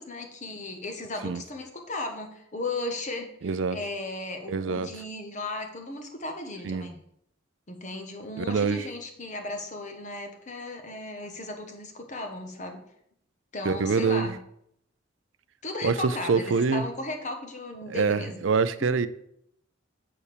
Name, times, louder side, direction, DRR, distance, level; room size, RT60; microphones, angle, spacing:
voice 1, 0.0-7.0 7.7-12.8 13.5-14.4 15.6-18.4 18.8-18.9, left 2 dB, 40° left, 1.3 m, -36 dB
voice 2, 3.4-3.8 4.5-4.9 6.6-6.9 8.4-8.9 13.7-14.4 15.8-16.8 17.9-19.1, right 5 dB, 80° right, 0.5 m, -25 dB
6.8 x 4.2 x 6.7 m
head